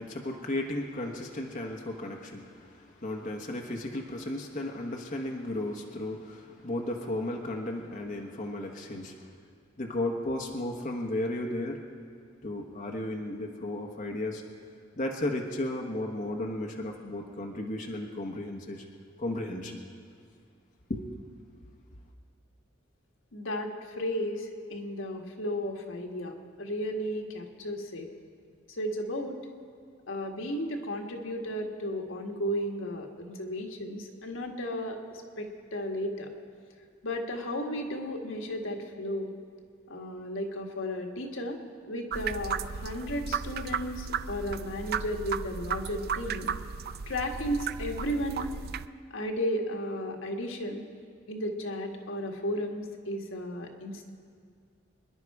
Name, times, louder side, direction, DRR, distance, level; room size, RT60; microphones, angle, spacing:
voice 1, 0.0-9.3 9.8-11.8 12.4-14.4 15.0-18.8 19.2-19.8 20.9-21.0, left 1 dB, 40° left, 1 dB, 1.3 m, -34 dB
voice 2, 23.3-28.1 28.7-29.4 30.1-36.3 37.0-39.3 39.9-41.6 41.9-46.5 47.1-48.5 49.1-50.8 51.3-54.1, equal, 80° left, 2 dB, 1.6 m, -34 dB
sound 1, 42.1-48.9, right 6 dB, 50° right, 0.4 m, -35 dB
25.5 x 10.5 x 4.8 m, 2.2 s
head